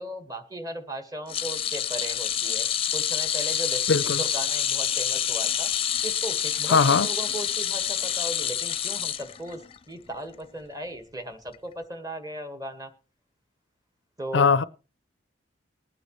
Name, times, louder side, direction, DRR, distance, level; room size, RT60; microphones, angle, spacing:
voice 1, 0.0-2.7 2.9-3.8 4.2-5.7 6.0-9.6 9.9-12.9 14.2-14.6, right 1 dB, 20° right, 1.5 m, -37 dB
sound 1, 1.3-9.8 10.1-10.3 11.5-11.6, left 9 dB, 30° left, 0.7 m, -27 dB
voice 2, 3.9-4.2 6.7-7.1 14.3-14.6, left 5 dB, 70° left, 0.5 m, -20 dB
21.0 x 9.4 x 3.1 m
head